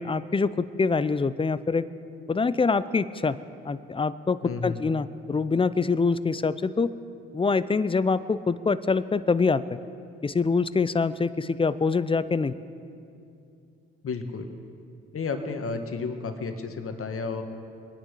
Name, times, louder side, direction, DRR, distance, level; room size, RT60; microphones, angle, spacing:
voice 1, 0.0-1.9 2.3-3.4 3.6-6.9 7.3-9.8 10.2-12.5, left 4 dB, 15° left, 16 dB, 0.5 m, -25 dB
voice 2, 4.4-4.8 14.0-14.5 15.1-17.4, left 4 dB, 40° left, 6 dB, 1.7 m, -32 dB
23.5 x 9.9 x 5.0 m, 2.6 s
hypercardioid pair, 55°, 33 cm